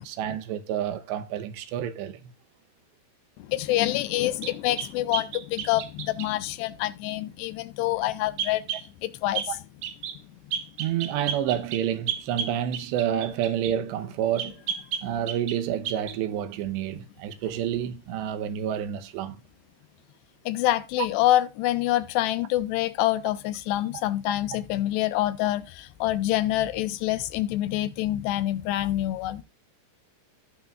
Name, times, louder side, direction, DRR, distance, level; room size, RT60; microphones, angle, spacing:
voice 1, 0.0-2.3 9.5-9.6 10.8-14.5 15.0-19.4 21.0-21.1, right 10 dB, 90° right, 3.2 m, -29 dB
voice 2, 3.4-8.6 9.0-9.6 20.5-29.4, left 15 dB, 85° left, 2.8 m, -26 dB
sound 1, 4.4-6.3 8.4-8.9 9.3-9.5 9.8-10.2 10.5-13.8 14.4-15.6 15.8-16.2, right 8 dB, 70° right, 2.1 m, -33 dB
17.5 x 5.9 x 2.4 m
omnidirectional pair, 4.8 m